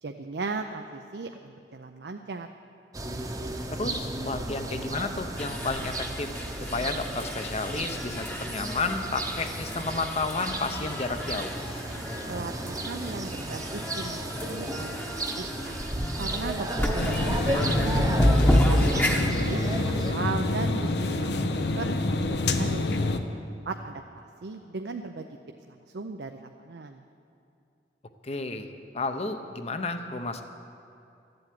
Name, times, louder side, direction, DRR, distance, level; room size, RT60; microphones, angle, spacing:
voice 1, 0.0-2.5 12.3-15.0 15.4-15.8 16.2-17.9 18.5-22.0 22.3-22.8 23.1-23.3 23.7-25.4 25.7-27.0, right 3 dB, 65° right, 5 dB, 0.6 m, -37 dB
sound 1, 2.9-20.1, right 1 dB, 20° right, 0.9 m, -34 dB
voice 2, 3.7-6.3 6.7-11.5 18.8-19.1 28.2-28.7 28.9-30.4, left 3 dB, 35° left, 7 dB, 0.8 m, -32 dB
sound 2, 5.4-19.3, left 1 dB, 10° left, 1.0 m, -30 dB
sound 3, 17.0-23.2, left 2 dB, 70° left, 0.8 m, -27 dB
13.5 x 7.9 x 9.4 m, 2.6 s
head